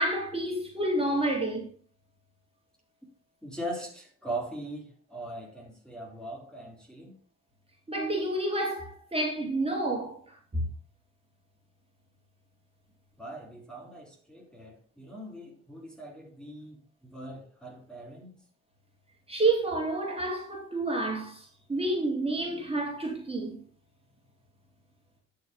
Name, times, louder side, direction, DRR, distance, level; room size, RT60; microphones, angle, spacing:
voice 1, 0.0-1.7 7.9-10.2 10.5-10.6 19.3-21.4 21.7-23.6, right 2 dB, 20° right, 3.8 m, -29 dB
voice 2, 3.4-7.1 13.2-18.4, right 1 dB, 5° left, 3.8 m, -40 dB
11.5 x 6.6 x 3.8 m
cardioid pair, 90°, 30 cm